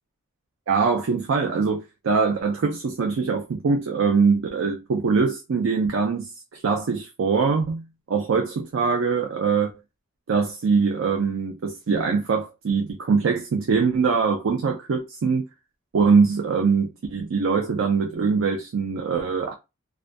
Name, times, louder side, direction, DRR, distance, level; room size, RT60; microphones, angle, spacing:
voice 1, 0.7-9.7 10.3-15.4 15.9-19.5, right 5 dB, 75° right, 0.4 m, -23 dB
2.4 x 2.2 x 2.4 m
head